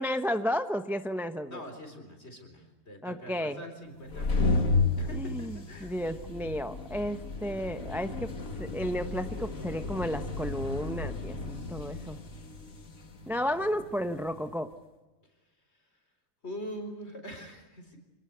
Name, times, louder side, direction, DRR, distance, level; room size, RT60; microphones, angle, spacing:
voice 1, 0.0-1.6 3.0-3.6 5.1-8.3 8.6-12.2 13.3-14.7, equal, ahead, 9 dB, 0.8 m, -33 dB
voice 2, 1.5-4.7 5.0-5.9 15.7-15.9 16.4-18.0, equal, 50° left, 6 dB, 4.3 m, -43 dB
sound 1, 4.0-14.4, left 3 dB, 80° left, 2.6 m, -33 dB
26.5 x 19.0 x 8.0 m, 1.2 s
omnidirectional pair, 1.4 m